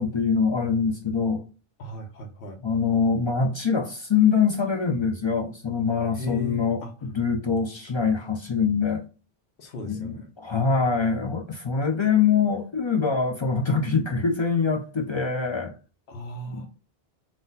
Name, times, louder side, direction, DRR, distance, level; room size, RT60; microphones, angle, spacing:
voice 1, 0.0-1.4 2.6-9.0 9.9-15.7 16.5-16.7, left 5 dB, 45° left, 0.3 m, -24 dB
voice 2, 1.8-2.6 6.2-6.9 7.7-7.8 9.6-10.3 16.1-16.7, equal, 65° left, 1.0 m, -36 dB
4.0 x 2.4 x 3.8 m
omnidirectional pair, 1.1 m